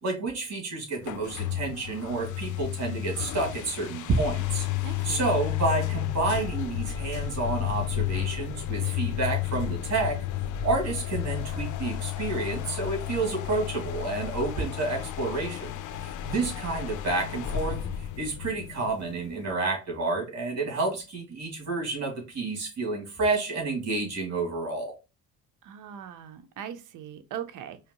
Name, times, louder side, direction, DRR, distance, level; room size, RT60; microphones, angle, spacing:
voice 1, 0.0-4.7 5.0-10.2 10.6-15.7 16.0-17.8 18.2-24.9, right 3 dB, 60° right, 2.5 m, -29 dB
sound 1, 1.0-19.5, left 12 dB, 80° left, 0.6 m, -32 dB
voice 2, 4.8-5.2 25.6-27.8, right 9 dB, 85° right, 0.7 m, -40 dB
4.9 x 3.1 x 2.9 m
cardioid pair, 90°, 30 cm